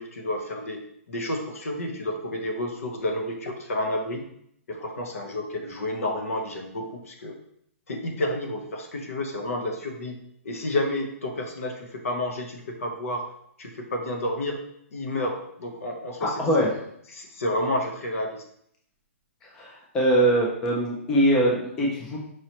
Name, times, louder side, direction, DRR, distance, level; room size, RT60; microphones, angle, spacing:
voice 1, 0.0-4.2 4.7-7.4 7.9-10.1 10.4-13.3 13.6-14.6 14.9-16.4 17.1-18.4, left 1 dB, 75° left, 3 dB, 0.9 m, -30 dB
voice 2, 16.2-16.8 19.4-22.2, right 1 dB, 5° left, -2 dB, 0.3 m, -23 dB
4.8 x 2.9 x 2.9 m, 0.70 s
hypercardioid pair, 180°, 8 cm